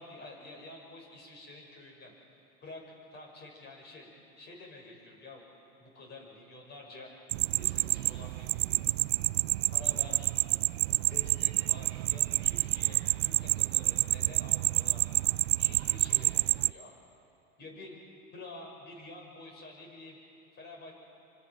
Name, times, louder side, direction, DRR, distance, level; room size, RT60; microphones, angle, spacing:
voice 1, 0.0-2.1 2.6-4.1 4.4-5.4 5.8-7.1 7.6-8.8 9.7-10.3 11.1-15.0 15.6-16.9 17.6-18.0 18.3-20.2 20.5-20.9, left 2 dB, 35° left, 0 dB, 6.4 m, -49 dB
sound 1, 7.3-16.7, right 22 dB, 85° right, 0.5 m, -28 dB
25.5 x 25.5 x 6.2 m, 2.6 s
supercardioid pair, 130°, 30 cm